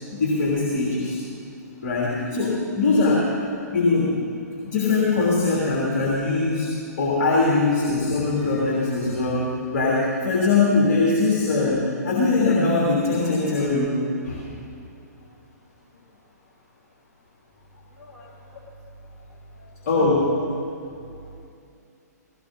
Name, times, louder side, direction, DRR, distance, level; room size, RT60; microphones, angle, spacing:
voice 1, 0.1-1.2 1.8-3.2 3.7-4.1 4.6-6.7 7.0-9.5 9.7-13.9 14.2-14.5 19.8-20.2, left 3 dB, 45° left, -5 dB, 3.1 m, -21 dB
voice 2, 17.9-18.7 19.3-20.0 20.9-21.4, right 1 dB, 10° left, -7 dB, 3.8 m, -47 dB
17.5 x 16.5 x 4.2 m, 2.5 s
figure-of-eight pair, 115°, 9 cm